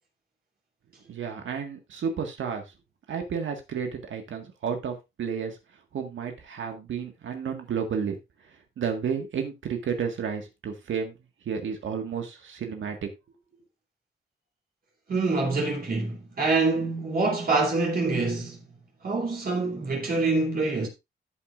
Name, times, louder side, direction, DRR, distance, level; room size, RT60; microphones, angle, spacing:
voice 1, 1.1-2.6 3.1-5.6 5.9-8.2 8.8-11.1 11.5-13.0, right 6 dB, 80° right, 1.7 m, -31 dB
voice 2, 15.1-18.6 19.0-20.9, right 3 dB, 50° right, 3.0 m, -25 dB
13.5 x 7.6 x 2.5 m
cardioid pair, 110°, 20 cm